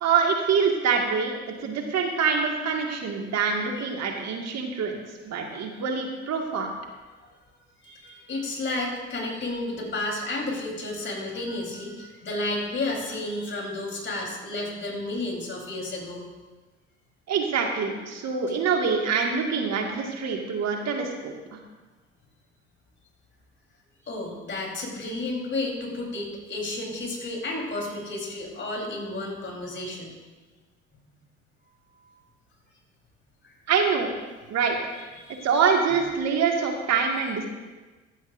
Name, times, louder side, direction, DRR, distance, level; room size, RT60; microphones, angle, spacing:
voice 1, 0.0-1.3 1.6-5.0 5.2-6.7 17.3-21.6 33.7-34.1 34.5-34.8 35.4-37.5, right 5 dB, 50° right, 2 dB, 2.1 m, -25 dB
voice 2, 7.8-16.2 24.0-30.1 35.2-35.5, left 2 dB, 35° left, 0 dB, 3.9 m, -32 dB
15.5 x 12.0 x 2.6 m, 1.3 s
figure-of-eight pair, 55°, 35 cm